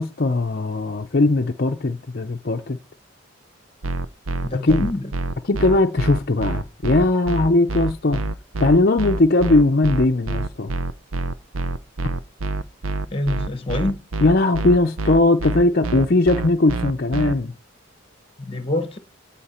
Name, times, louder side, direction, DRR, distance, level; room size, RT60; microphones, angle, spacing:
voice 1, 0.0-2.8 4.6-4.9 5.4-8.2 8.6-10.7 14.2-17.5, left 2 dB, 50° left, 0.6 m, -19 dB
sound 1, 3.8-17.3, right 2 dB, 90° right, 0.7 m, -26 dB
voice 2, 4.4-5.1 13.1-14.0 18.4-19.0, left 1 dB, 25° left, 1.1 m, -25 dB
17.0 x 5.8 x 4.4 m
head